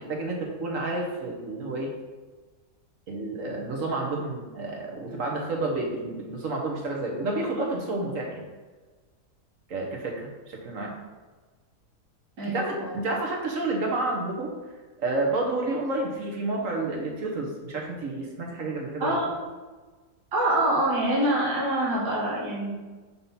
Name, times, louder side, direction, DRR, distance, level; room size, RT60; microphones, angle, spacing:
voice 1, 0.0-1.9 3.1-8.4 9.7-11.0 12.4-14.5 15.0-19.2, right 2 dB, 55° right, 0 dB, 1.5 m, -30 dB
voice 2, 12.4-13.0 19.0-19.3 20.3-22.7, right 1 dB, 85° right, -5 dB, 2.1 m, -25 dB
5.7 x 3.9 x 5.5 m, 1.3 s
omnidirectional pair, 1.8 m